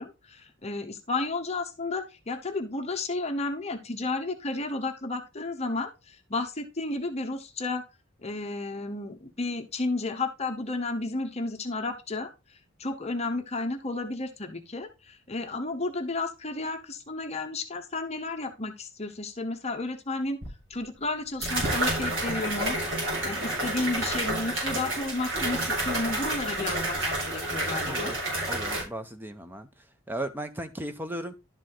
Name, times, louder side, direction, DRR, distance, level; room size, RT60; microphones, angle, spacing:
voice 1, 0.0-7.8 8.2-20.4 20.7-22.8 23.2-28.2, left 2 dB, 30° left, 0.9 m, -32 dB
sound 1, 20.4-20.5 21.4-28.8, right 1 dB, 70° right, 4.2 m, -29 dB
voice 2, 27.8-28.2 28.5-29.7 30.1-31.4, right 1 dB, 10° right, 0.8 m, -36 dB
11.5 x 4.8 x 3.9 m
head